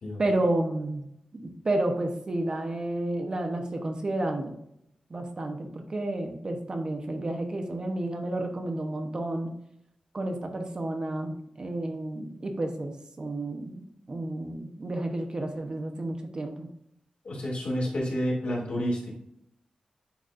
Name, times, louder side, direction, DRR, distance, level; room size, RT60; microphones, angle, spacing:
voice 1, 0.2-4.5 5.1-9.5 10.1-16.7, right 1 dB, 35° right, 4 dB, 0.8 m, -31 dB
voice 2, 17.2-19.1, equal, 60° left, -3 dB, 2.4 m, -29 dB
10.0 x 4.1 x 2.5 m, 0.75 s
wide cardioid pair, 160°, 2 cm